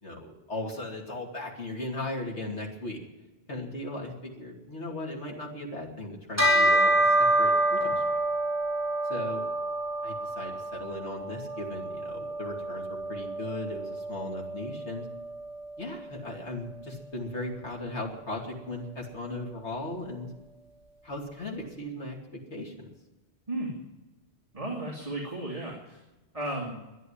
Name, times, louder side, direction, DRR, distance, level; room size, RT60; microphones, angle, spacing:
voice 1, 0.0-3.0 3.5-8.0 9.1-9.5 10.0-15.1 15.8-20.3 21.0-22.9, left 2 dB, 85° left, -1 dB, 3.2 m, -37 dB
Bell, 6.4-16.1, right 1 dB, 15° left, 4.3 m, -28 dB
voice 2, 24.5-26.0 26.3-26.8, right 1 dB, 30° right, -2 dB, 2.5 m, -34 dB
13.0 x 11.0 x 9.9 m, 1.1 s
omnidirectional pair, 1.1 m